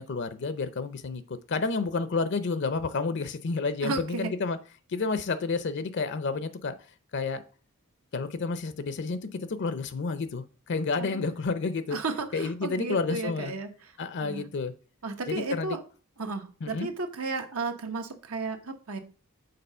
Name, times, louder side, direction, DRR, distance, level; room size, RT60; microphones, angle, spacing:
voice 1, 0.0-4.6 4.9-6.8 7.1-7.4 8.1-12.0 12.3-13.5 14.0-14.7 15.3-15.8 16.6-16.9, left 4 dB, 55° left, 12 dB, 0.5 m, -30 dB
voice 2, 3.8-4.3 11.0-11.3 11.9-13.9 14.2-14.4 15.0-15.8 16.2-19.0, right 3 dB, 85° right, 5 dB, 1.1 m, -33 dB
6.8 x 3.8 x 5.4 m, 0.37 s
head